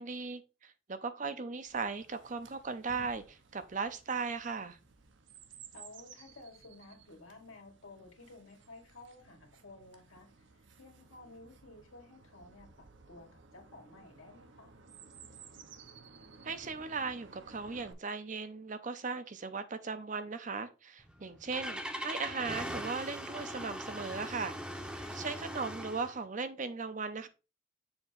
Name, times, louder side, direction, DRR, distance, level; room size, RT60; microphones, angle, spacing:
voice 1, 0.0-4.8 16.4-27.3, right 4 dB, 40° right, 0.6 m, -38 dB
Chirp tweet, 1.7-17.9, right 5 dB, 65° right, 0.8 m, -57 dB
voice 2, 5.7-14.7 25.0-25.3, left 2 dB, 85° left, 2.0 m, -54 dB
Engine starting, 21.0-26.2, equal, 5° right, 0.7 m, -41 dB
7.1 x 2.9 x 5.1 m
head